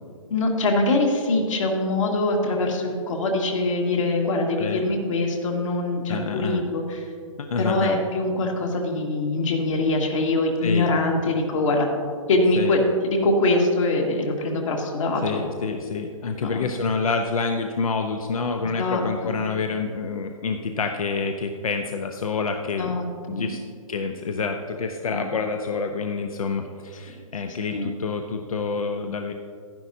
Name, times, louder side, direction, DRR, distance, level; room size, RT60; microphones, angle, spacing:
voice 1, 0.3-7.0 7.6-11.9 12.3-12.8 13.0-15.4 16.4-16.6 18.8-19.4 22.8-23.0 23.3-23.6 25.1-25.2 27.5-27.9, left 2 dB, 65° left, 1 dB, 1.9 m, -23 dB
voice 2, 6.1-6.6 7.4-7.9 10.6-10.9 12.6-12.8 15.2-23.0 23.3-23.6 23.9-29.3, left 4 dB, 80° left, 5 dB, 0.7 m, -27 dB
11.5 x 10.5 x 2.7 m, 2.3 s
hypercardioid pair, 140°, 18 cm